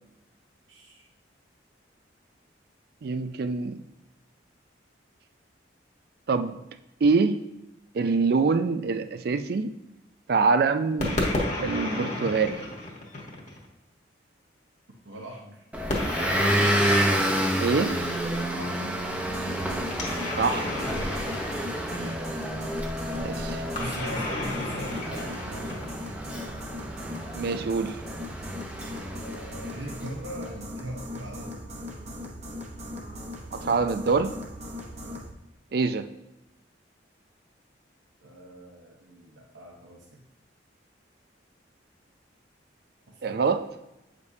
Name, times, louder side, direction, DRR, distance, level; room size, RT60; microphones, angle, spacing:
voice 1, 0.7-1.1 15.0-15.6 18.6-19.2 21.6-22.2 23.3-25.9 29.0-31.9 35.0-35.3 38.2-40.2 43.1-43.6, right 1 dB, 85° right, -1 dB, 0.9 m, -41 dB
voice 2, 3.0-3.8 6.3-6.6 7.0-7.4 7.9-9.7 10.3-11.2 11.6-12.6 17.6-18.0 20.4-20.7 23.1-23.6 27.3-28.0 33.5-34.3 35.7-36.1 43.2-43.7, right 4 dB, 55° right, 11 dB, 0.4 m, -25 dB
sound 1, 11.0-13.7 15.9-18.3 19.9-22.4 23.7-26.2, left 1 dB, 40° left, 1.2 m, -32 dB
Motor vehicle (road) / Engine, 15.7-29.9, equal, 5° right, 0.6 m, -29 dB
sound 2, 19.2-35.3, left 1 dB, 35° right, 0.9 m, -39 dB
8.0 x 5.2 x 2.7 m, 0.93 s
head